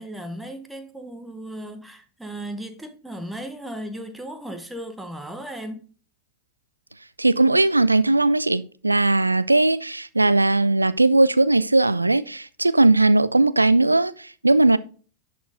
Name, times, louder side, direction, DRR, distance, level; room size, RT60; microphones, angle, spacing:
voice 1, 0.0-5.8, right 1 dB, 5° right, 1.1 m, -36 dB
voice 2, 7.2-14.8, right 2 dB, 85° right, 0.4 m, -18 dB
10.5 x 4.3 x 3.5 m
figure-of-eight pair, 90°, 0 cm